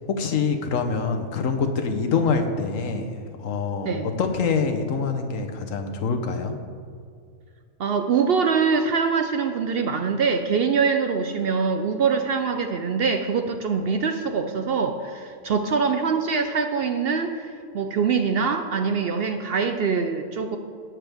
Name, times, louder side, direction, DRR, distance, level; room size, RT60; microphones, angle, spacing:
voice 1, 0.1-3.9 4.2-6.5, left 5 dB, 65° left, 6 dB, 1.2 m, -25 dB
voice 2, 7.8-20.6, right 5 dB, 70° right, 6 dB, 0.5 m, -24 dB
17.0 x 6.0 x 3.4 m, 2.2 s
omnidirectional pair, 1.6 m